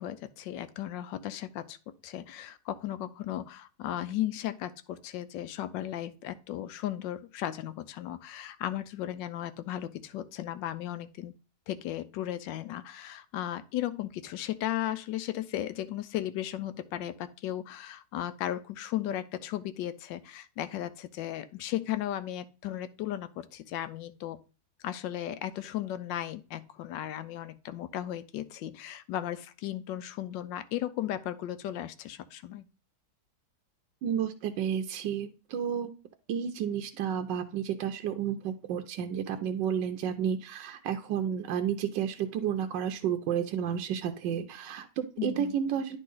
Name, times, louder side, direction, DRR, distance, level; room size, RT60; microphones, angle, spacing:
voice 1, 0.0-11.3 11.7-24.4 24.8-32.7 45.2-45.5, left 12 dB, 85° left, 13 dB, 1.3 m, -36 dB
voice 2, 34.0-35.9 36.3-46.0, right 8 dB, 90° right, 6 dB, 1.3 m, -31 dB
10.0 x 3.7 x 3.9 m, 0.35 s
omnidirectional pair, 1.9 m